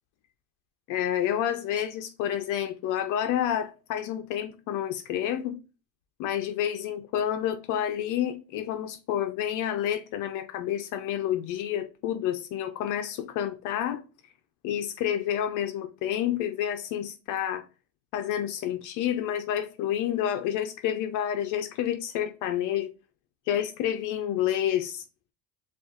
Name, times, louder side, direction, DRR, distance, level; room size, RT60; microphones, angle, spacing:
voice 1, 0.9-5.6 6.2-14.0 14.6-17.6 18.1-22.9 23.5-25.0, left 10 dB, 55° left, 0.5 m, -29 dB
7.0 x 2.5 x 2.4 m
cardioid pair, 165°, 37 cm